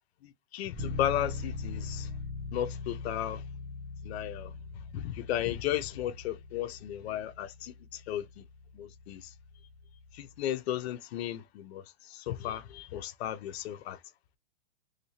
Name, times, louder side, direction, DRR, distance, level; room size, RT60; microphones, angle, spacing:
voice 1, 0.2-2.1 2.5-3.4 4.0-4.5 4.9-8.4 8.7-9.3 10.1-14.0, left 11 dB, 55° left, 0.6 m, -35 dB
Bass guitar, 0.8-10.5, left 4 dB, 5° right, 0.5 m, -41 dB
3.1 x 2.6 x 2.9 m
hypercardioid pair, 155°, 38 cm